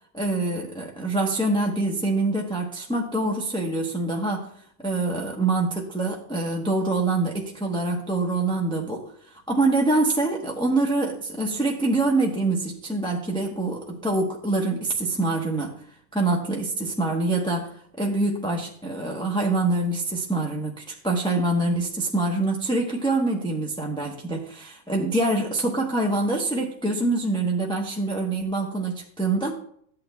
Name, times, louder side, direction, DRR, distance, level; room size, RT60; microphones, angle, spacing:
voice 1, 0.1-4.5 4.8-15.7 16.1-29.5, right 2 dB, 5° left, -2 dB, 0.9 m, -25 dB
14.0 x 8.8 x 2.3 m, 0.64 s
omnidirectional pair, 1.3 m